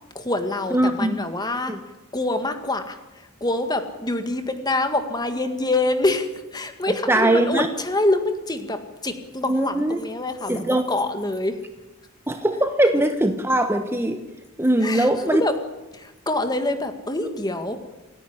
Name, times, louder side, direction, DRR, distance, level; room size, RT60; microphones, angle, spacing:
voice 1, 0.2-1.8 2.1-11.6 14.8-15.5 15.9-17.8, left 2 dB, 20° left, 8 dB, 1.8 m, -26 dB
voice 2, 0.7-1.2 1.7-1.8 7.1-7.7 9.4-10.0 10.5-10.8 12.3-14.2 14.6-15.5, right 1 dB, 10° right, 6 dB, 1.0 m, -21 dB
28.0 x 10.5 x 10.0 m, 1.1 s
head